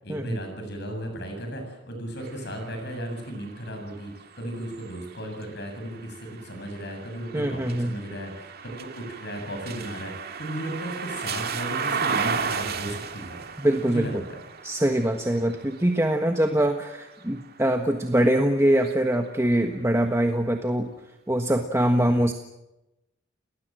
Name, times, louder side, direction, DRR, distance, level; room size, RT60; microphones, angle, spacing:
voice 1, 0.0-13.4 13.9-14.4, right 1 dB, 60° left, 5 dB, 7.9 m, -35 dB
sound 1, 2.2-18.1 18.7-19.9, right 6 dB, 55° right, 2.0 m, -35 dB
voice 2, 7.3-8.0 13.6-14.2 14.6-20.9 21.3-22.3, right 1 dB, 15° right, 4 dB, 1.4 m, -23 dB
30.0 x 19.5 x 7.8 m, 0.94 s
head